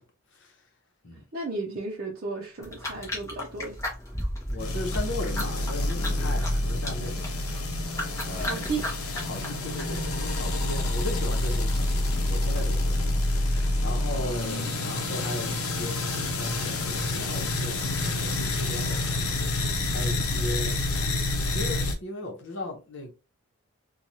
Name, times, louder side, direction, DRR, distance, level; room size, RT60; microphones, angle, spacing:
voice 1, 0.3-0.6 1.0-1.2 4.5-7.5 8.2-8.6 9.1-19.5 19.9-21.1 21.5-23.1, left 1 dB, 55° left, 0.9 m, -37 dB
voice 2, 1.3-3.8 8.4-8.8, right 3 dB, 45° right, 0.6 m, -33 dB
sound 1, 2.6-10.1, left 1 dB, 15° left, 0.8 m, -36 dB
sound 2, 4.6-21.9, left 2 dB, 80° left, 0.7 m, -28 dB
3.1 x 2.3 x 2.7 m
head